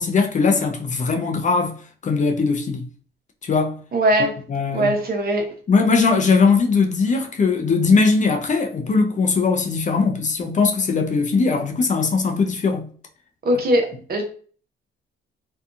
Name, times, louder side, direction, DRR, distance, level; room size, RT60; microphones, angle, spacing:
voice 1, 0.0-2.9 3.4-3.8 4.5-4.9 5.7-12.9, left 4 dB, 35° left, 0.5 m, -20 dB
voice 2, 3.9-4.3 4.7-5.6 13.4-14.2, right 1 dB, 45° right, 0.8 m, -20 dB
2.7 x 2.3 x 2.5 m
cardioid pair, 85°, 21 cm